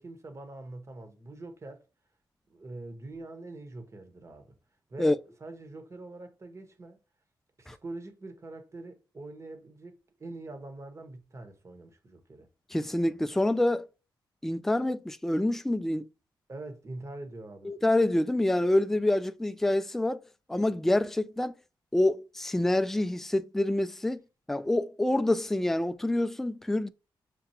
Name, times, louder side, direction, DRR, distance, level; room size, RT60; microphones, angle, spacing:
voice 1, 0.0-1.8 2.5-4.5 4.9-5.1 5.4-7.0 7.6-12.5 16.5-17.8, right 2 dB, 35° right, 1.2 m, -44 dB
voice 2, 12.7-13.9 14.4-16.1 17.6-20.2 20.5-21.6 21.9-24.2 24.5-26.9, left 1 dB, 5° left, 0.3 m, -27 dB
6.7 x 2.3 x 2.8 m
cardioid pair, 85°, 8 cm